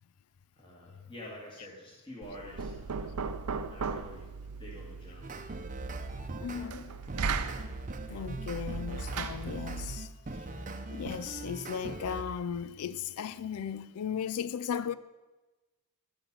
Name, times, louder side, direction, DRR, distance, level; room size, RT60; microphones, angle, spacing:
voice 1, 0.5-3.3 3.6-4.3 4.6-5.4, left 1 dB, 25° left, 2.2 m, -48 dB
Knock, 2.2-10.1, right 5 dB, 90° right, 0.6 m, -38 dB
sound 1, 5.2-6.7 7.1-12.2, right 2 dB, 35° right, 0.8 m, -41 dB
voice 2, 6.4-6.9 8.1-10.1 10.9-14.9, left 7 dB, 75° left, 0.4 m, -36 dB
11.5 x 5.9 x 6.8 m
head